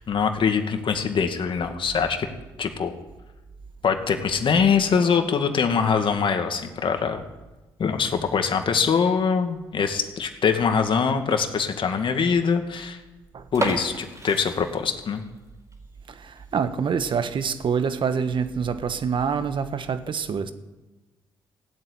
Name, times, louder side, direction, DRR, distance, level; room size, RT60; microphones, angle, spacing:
voice 1, 0.0-2.3 2.6-2.9 3.8-7.2 7.8-13.0 13.5-15.2, left 6 dB, 55° left, 2.2 m, -23 dB
sound 1, 13.5-15.4 15.7-15.8 16.4-16.5 16.9-17.0 17.3-17.4 18.1-18.5, right 2 dB, 30° right, 4.9 m, -31 dB
voice 2, 16.1-20.5, right 6 dB, 55° right, 1.4 m, -26 dB
16.5 x 8.2 x 9.8 m
supercardioid pair, 55°, 10 cm